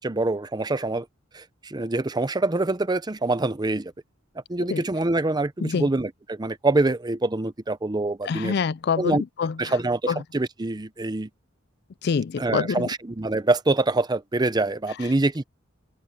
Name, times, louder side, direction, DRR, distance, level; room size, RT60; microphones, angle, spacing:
voice 1, 0.0-1.1 1.3-3.9 4.5-8.5 9.0-9.2 9.6-11.3 12.4-15.4, right 2 dB, 20° right, 0.6 m, -25 dB
voice 2, 8.2-9.7 10.1-10.2 12.0-12.9, left 5 dB, 55° left, 0.4 m, -26 dB
head